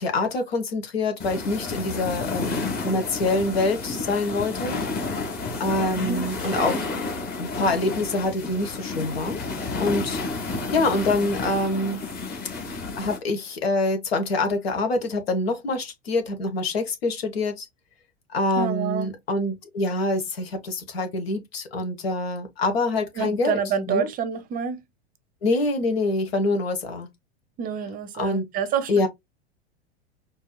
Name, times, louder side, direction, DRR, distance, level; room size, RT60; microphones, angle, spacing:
voice 1, 0.0-4.8 5.6-7.1 7.4-9.4 9.8-10.2 10.7-12.0 13.0-17.7 18.3-23.6 23.9-24.1 25.4-27.1 28.2-28.4 28.9-29.1, left 2 dB, 65° left, 1.2 m, -25 dB
sound 1, 1.2-13.2, left 3 dB, 30° left, 1.5 m, -31 dB
voice 2, 5.9-6.8 18.5-19.1 23.2-24.8 27.6-29.1, right 7 dB, 25° right, 0.7 m, -28 dB
4.5 x 2.8 x 2.2 m
figure-of-eight pair, 85°, 33 cm